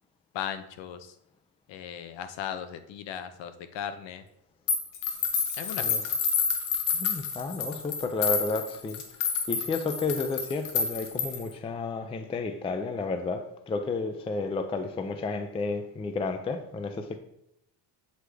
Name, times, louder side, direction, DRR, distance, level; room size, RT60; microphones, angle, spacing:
voice 1, 0.3-1.1 1.7-4.2 5.6-5.8, left 9 dB, 60° left, 10 dB, 0.8 m, -37 dB
sound 1, 4.7-11.5, left 6 dB, 80° left, 1.4 m, -29 dB
voice 2, 6.9-9.0 9.5-17.2, left 3 dB, 15° left, 8 dB, 0.3 m, -32 dB
8.0 x 3.3 x 4.8 m, 0.80 s
cardioid pair, 135°, 49 cm